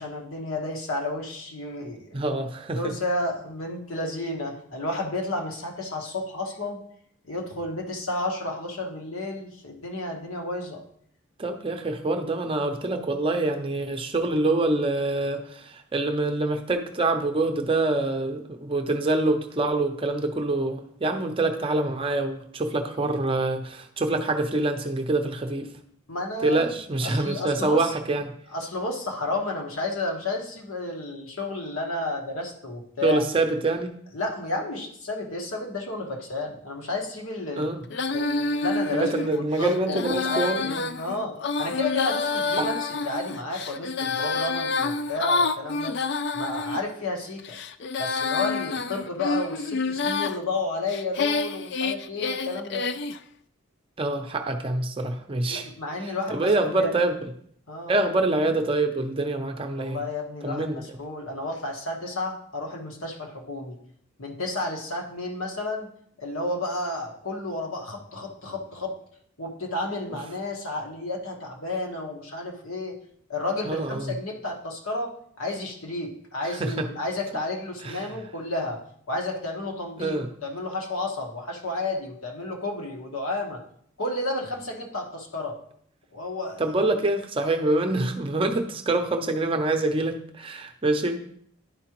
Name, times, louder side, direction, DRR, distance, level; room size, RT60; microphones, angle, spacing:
voice 1, 0.0-2.4 2.7-6.8 7.2-10.8 26.1-26.7 27.0-27.9 28.5-33.2 34.1-37.7 38.1-45.9 46.3-47.5 48.0-52.9 55.5-56.9 57.7-57.9 59.7-63.8 64.2-65.9 66.2-69.0 69.4-73.0 73.3-78.8 79.1-83.6 84.0-85.5 86.1-86.6, left 2 dB, 80° left, 1 dB, 1.4 m, -31 dB
voice 2, 2.1-2.9 11.4-25.7 26.4-28.3 33.0-33.9 37.6-37.8 38.9-40.6 42.6-42.7 54.0-55.7 56.0-57.3 57.9-60.0 60.4-61.0 73.6-74.1 76.6-76.9 77.8-78.1 80.0-80.3 86.6-91.2, right 2 dB, 25° right, 5 dB, 0.6 m, -25 dB
Female singing, 37.9-46.8 47.4-50.4 50.9-53.2, left 3 dB, 55° left, 0.3 m, -28 dB
11.0 x 4.8 x 3.0 m, 0.65 s
head